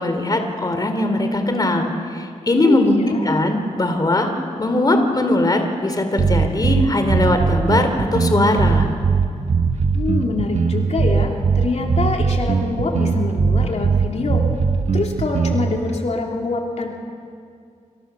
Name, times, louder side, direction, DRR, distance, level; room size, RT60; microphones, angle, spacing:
voice 1, 0.0-2.9 3.3-4.3 4.6-8.9, left 2 dB, 30° left, 6 dB, 3.0 m, -20 dB
voice 2, 2.6-3.4 9.9-14.5 14.9-16.9, left 3 dB, 60° left, 1 dB, 3.0 m, -25 dB
sound 1, 6.2-15.8, right 5 dB, 65° right, 1.6 m, -19 dB
27.5 x 27.0 x 6.9 m, 2.3 s
wide cardioid pair, 95°, 13 cm